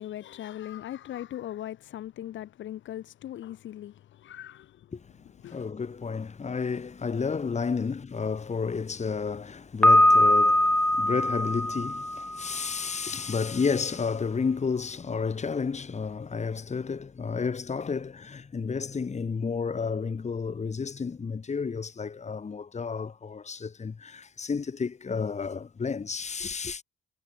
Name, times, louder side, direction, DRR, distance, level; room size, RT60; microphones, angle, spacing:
voice 1, 0.0-4.9 5.4-5.7, left 12 dB, 75° left, 1.9 m, -39 dB
voice 2, 4.9-26.8, left 5 dB, 35° left, 3.6 m, -31 dB
Piano, 9.8-12.7, left 1 dB, 5° left, 0.7 m, -21 dB
cardioid pair, 90°, 20 cm